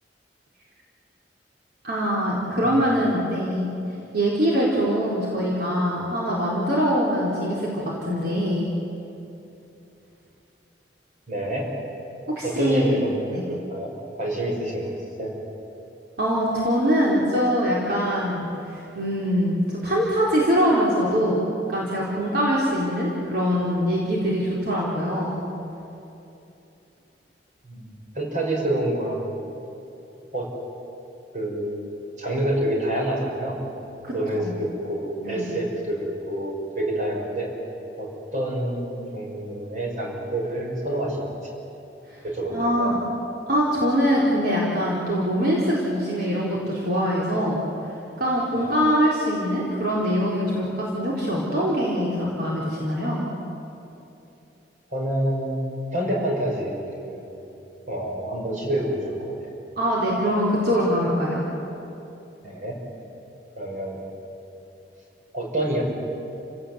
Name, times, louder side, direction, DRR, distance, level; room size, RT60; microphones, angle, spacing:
voice 1, 1.8-3.7 4.1-8.7 12.3-12.9 13.3-13.4 16.2-21.4 21.7-25.4 34.0-34.6 35.2-35.5 42.1-42.2 42.5-43.0 43.5-47.6 48.2-53.2 59.8-61.4, equal, 60° right, -5 dB, 4.3 m, -23 dB
voice 2, 11.3-11.7 12.4-15.3 27.6-29.4 30.3-30.5 31.3-31.9 32.2-33.6 34.1-37.5 38.0-41.3 42.2-42.9 48.6-48.7 54.9-57.2 57.9-59.2 62.4-62.8 63.6-64.1 65.3-65.8, right 1 dB, 45° right, -1 dB, 5.9 m, -27 dB
30.0 x 17.5 x 8.4 m, 2.9 s
head